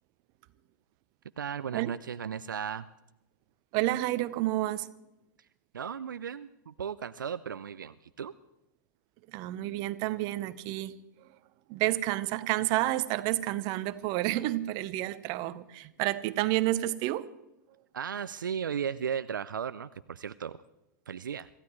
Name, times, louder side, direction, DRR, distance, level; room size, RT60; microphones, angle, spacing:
voice 1, 1.4-2.9 5.7-8.3 17.9-20.6 21.1-21.5, right 7 dB, 75° right, 15 dB, 0.5 m, -35 dB
voice 2, 3.7-4.9 9.3-11.3 11.7-17.3, right 16 dB, 40° right, 14 dB, 0.8 m, -30 dB
26.0 x 15.0 x 3.1 m, 0.93 s
figure-of-eight pair, 100°, 11 cm